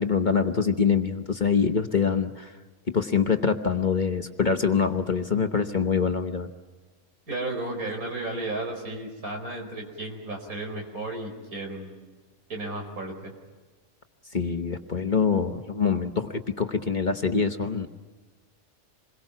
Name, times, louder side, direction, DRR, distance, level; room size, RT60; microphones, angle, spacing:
voice 1, 0.0-2.5 2.9-6.5 14.3-17.9, left 5 dB, 35° left, 7 dB, 1.1 m, -25 dB
voice 2, 7.3-12.0 12.5-13.3, right 2 dB, 85° right, 3 dB, 5.0 m, -33 dB
28.0 x 22.0 x 5.8 m, 1.4 s
omnidirectional pair, 1.5 m